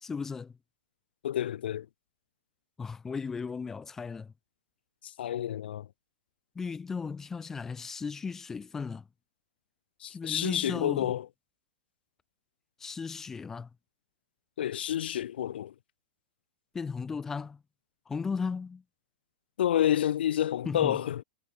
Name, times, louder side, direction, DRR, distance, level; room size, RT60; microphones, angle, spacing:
voice 1, 0.0-0.6 2.8-4.3 6.5-9.1 10.1-11.1 12.8-13.7 16.7-17.6 18.1-18.8 20.6-21.0, left 5 dB, 10° left, 0.5 m, -36 dB
voice 2, 1.2-1.9 5.0-5.9 10.0-11.2 14.6-15.7 19.6-21.2, left 11 dB, 80° left, 0.4 m, -29 dB
supercardioid pair, 175°, 5 cm